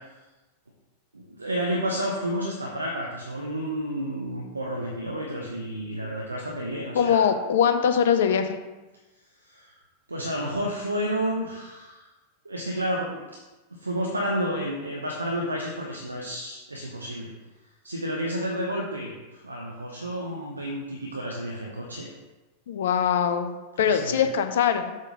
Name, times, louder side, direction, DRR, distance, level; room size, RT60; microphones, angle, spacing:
voice 1, 1.1-7.2 9.5-9.7 10.1-12.0 12.4-13.2 13.8-17.3 17.8-22.1 23.8-24.2, equal, 80° right, -1 dB, 0.9 m, -30 dB
voice 2, 6.9-8.6 22.7-25.0, left 8 dB, 60° left, 8 dB, 0.6 m, -22 dB
7.5 x 3.9 x 5.0 m, 1.1 s
figure-of-eight pair, 90°, 0 cm